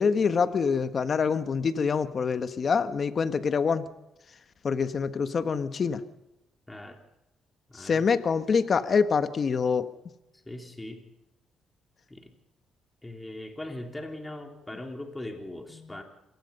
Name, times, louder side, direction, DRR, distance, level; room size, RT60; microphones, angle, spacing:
voice 1, 0.0-3.8 4.6-6.0 7.7-9.9, left 5 dB, 45° left, 11 dB, 1.3 m, -25 dB
voice 2, 6.7-7.0 7.7-8.1 10.5-11.1 12.1-12.3 13.0-16.0, left 1 dB, 15° left, 3 dB, 3.6 m, -40 dB
26.5 x 19.0 x 5.5 m, 0.93 s
cardioid pair, 90°, 0 cm